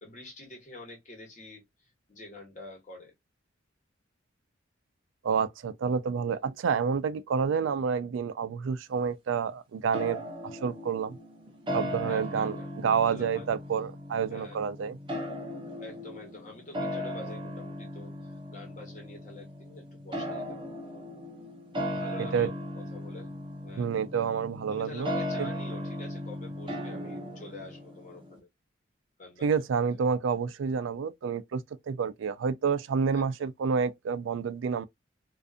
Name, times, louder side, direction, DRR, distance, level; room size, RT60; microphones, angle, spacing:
voice 1, 0.0-3.1 12.0-13.5 14.3-14.6 15.8-20.8 21.7-23.3 23.6-23.9 24.7-28.5 29.2-29.6 33.1-33.5, left 2 dB, 40° left, 1.1 m, -47 dB
voice 2, 5.2-11.2 11.7-15.0 22.3-22.5 23.8-25.5 29.4-34.9, right 6 dB, 85° right, 0.3 m, -29 dB
sound 1, 9.9-28.4, equal, 25° right, 0.6 m, -37 dB
2.5 x 2.4 x 2.4 m
head